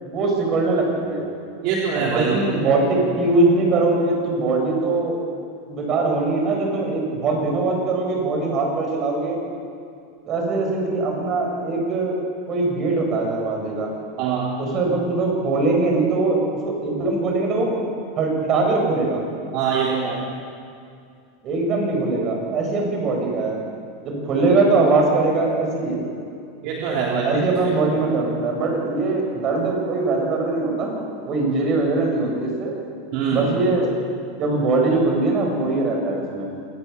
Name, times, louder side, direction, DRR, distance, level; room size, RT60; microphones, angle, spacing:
voice 1, 0.0-1.2 1.9-2.9 3.2-5.2 5.7-9.4 10.3-12.2 12.5-13.9 14.6-16.4 16.6-17.7 18.2-19.2 21.4-23.6 24.0-26.0 27.2-32.8 33.3-33.9 34.4-36.5, right 3 dB, 35° right, 1 dB, 7.7 m, -21 dB
voice 2, 1.6-2.6 14.2-14.6 19.5-20.3 26.6-27.7 33.1-33.5, right 6 dB, 55° right, -2 dB, 3.4 m, -23 dB
28.0 x 19.0 x 7.3 m, 2.4 s
supercardioid pair, 130°, 0 cm